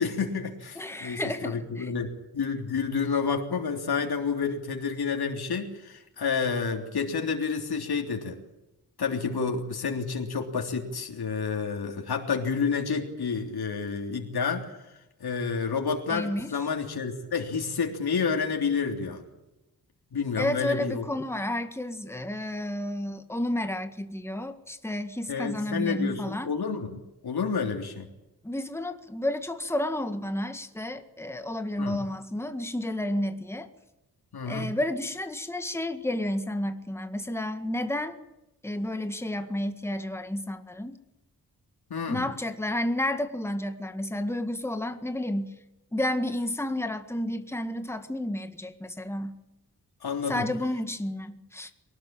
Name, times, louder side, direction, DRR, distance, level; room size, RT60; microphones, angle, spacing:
voice 1, 0.0-8.4 9.0-14.8 15.2-19.2 20.1-21.0 25.3-28.1 31.8-32.0 34.3-34.7 41.9-42.2 50.0-50.4, left 5 dB, 90° left, 2 dB, 3.4 m, -29 dB
voice 2, 0.8-1.9 16.1-16.5 20.4-26.5 28.4-33.7 34.5-38.2 38.6-41.0 42.1-45.6 45.9-49.4 50.3-51.7, left 1 dB, 5° left, 7 dB, 1.8 m, -31 dB
23.5 x 19.5 x 8.9 m, 0.94 s
wide cardioid pair, 160°, 37 cm